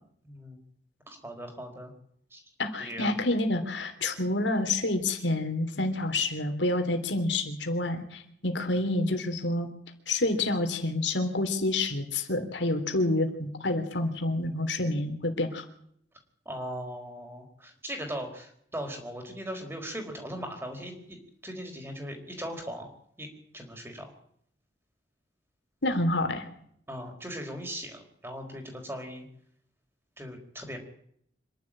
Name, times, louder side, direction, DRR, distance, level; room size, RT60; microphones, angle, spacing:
voice 1, 0.2-0.6 1.1-1.9 2.3-2.4 2.8-3.1 16.4-21.2 21.4-22.9 23.2-23.3 23.5-24.1 26.9-29.3 30.2-30.8, equal, 15° right, 3 dB, 4.5 m, -39 dB
voice 2, 2.6-9.7 10.1-15.6 25.8-26.4, left 2 dB, 85° left, 6 dB, 3.3 m, -28 dB
26.0 x 11.5 x 8.9 m, 0.69 s
head